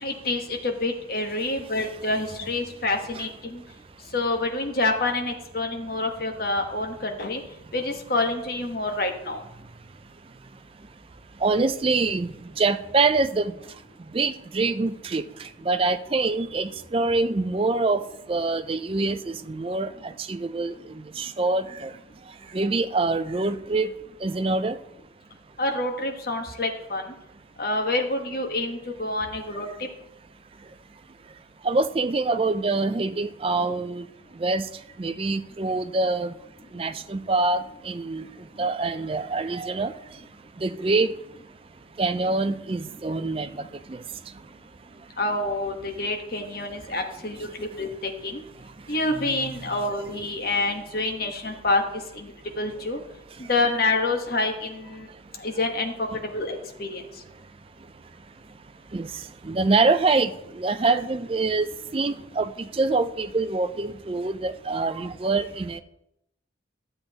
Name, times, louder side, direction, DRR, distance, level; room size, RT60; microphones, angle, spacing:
voice 1, 0.0-3.6 4.1-7.4 7.7-9.4 25.6-27.0 27.6-29.9 45.2-48.4 48.9-52.3 52.6-53.0 53.5-55.1 55.4-57.0, left 2 dB, 50° left, 4 dB, 1.2 m, -27 dB
voice 2, 11.4-12.3 12.6-13.5 14.1-15.2 15.7-18.0 18.3-20.7 21.2-21.9 22.5-23.9 24.2-24.8 31.6-34.0 34.4-34.7 35.0-36.3 36.7-38.2 38.6-39.9 40.6-41.1 42.0-43.5 43.9-44.0 58.9-59.1 59.4-61.7 61.9-65.8, right 3 dB, 30° right, 10 dB, 0.4 m, -25 dB
12.5 x 7.7 x 2.9 m, 0.82 s
head